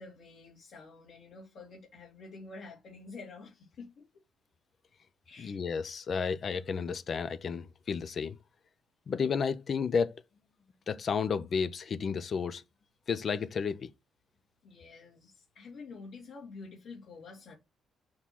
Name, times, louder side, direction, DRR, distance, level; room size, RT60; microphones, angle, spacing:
voice 1, 0.0-4.0 5.2-5.6 14.6-17.6, left 4 dB, 70° left, 2.4 m, -48 dB
voice 2, 5.4-8.4 9.1-10.2 10.9-12.6 13.1-13.9, left 6 dB, 50° left, 0.5 m, -32 dB
6.4 x 3.0 x 5.5 m
cardioid pair, 90°, 0 cm